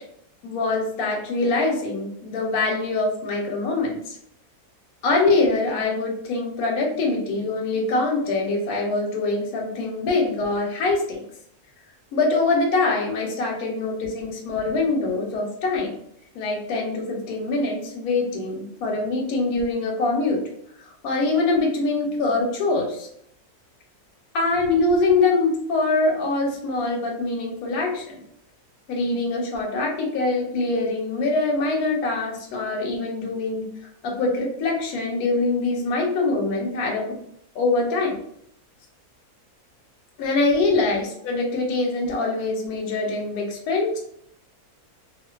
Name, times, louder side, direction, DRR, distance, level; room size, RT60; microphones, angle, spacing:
voice 1, 0.4-4.2 5.0-11.2 12.1-16.0 16.3-20.4 20.8-23.1 24.3-28.2 28.9-33.7 34.0-37.2 37.5-38.1 40.2-44.0, left 3 dB, 85° left, 0 dB, 1.1 m, -24 dB
2.4 x 2.4 x 2.2 m, 0.70 s
omnidirectional pair, 1.6 m